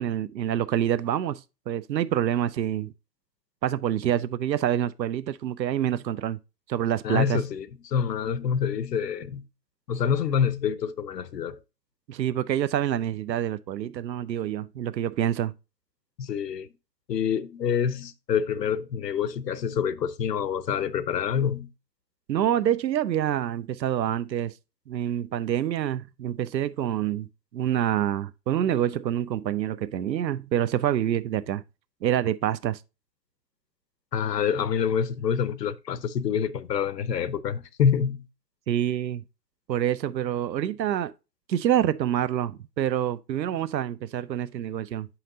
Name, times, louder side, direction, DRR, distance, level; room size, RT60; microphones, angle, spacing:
voice 1, 0.0-2.9 3.6-6.4 6.7-7.4 12.1-15.5 22.3-24.5 24.9-31.6 32.0-32.8 38.7-39.2 39.7-41.1 41.5-45.1, right 11 dB, 90° right, 0.6 m, -27 dB
voice 2, 7.0-9.4 9.9-11.6 16.2-16.7 17.1-21.7 34.1-38.2, left 7 dB, 75° left, 0.8 m, -27 dB
7.8 x 5.7 x 2.7 m
hypercardioid pair, 170°, 49 cm